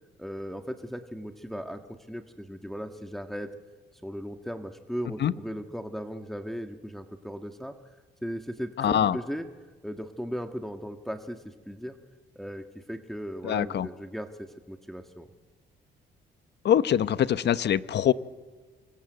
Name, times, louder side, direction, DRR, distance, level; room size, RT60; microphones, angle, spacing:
voice 1, 0.2-3.5 4.0-7.7 8.2-9.4 9.8-12.0 12.3-15.3, equal, ahead, 6 dB, 1.6 m, -37 dB
voice 2, 8.8-9.2 13.4-13.9 16.6-18.1, left 10 dB, 60° left, 15 dB, 1.0 m, -23 dB
26.0 x 24.5 x 8.0 m, 1.4 s
cardioid pair, 90°, 20 cm